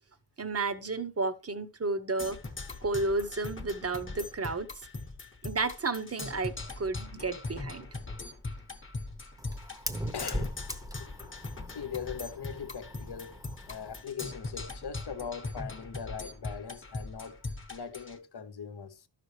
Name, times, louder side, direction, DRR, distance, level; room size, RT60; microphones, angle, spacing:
voice 1, 0.4-2.4 2.8-4.7 5.4-7.9, right 3 dB, 35° right, 0.9 m, -32 dB
Percussion, 2.2-18.2, left 3 dB, 30° left, 1.0 m, -41 dB
Fire, 7.9-14.1, equal, 10° right, 0.9 m, -41 dB
voice 2, 10.1-11.1 11.7-13.4 13.7-19.1, left 7 dB, 65° left, 0.9 m, -41 dB
12.5 x 5.9 x 3.2 m
wide cardioid pair, 70°, 43 cm